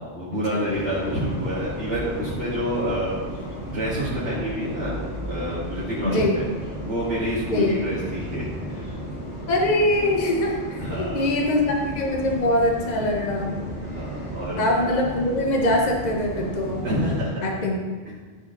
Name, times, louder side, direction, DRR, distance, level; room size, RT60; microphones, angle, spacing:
voice 1, 0.0-3.2 3.6-6.4 6.9-9.0 10.8-11.2 13.8-14.6 16.8-17.5, equal, 85° right, -10 dB, 2.2 m, -28 dB
sound 1, 0.6-17.1, equal, 85° left, 3.0 m, -34 dB
voice 2, 9.5-13.6 14.6-16.9 17.4-17.8, left 1 dB, 40° left, 0 dB, 1.2 m, -23 dB
12.5 x 5.1 x 3.9 m, 1.4 s
omnidirectional pair, 1.2 m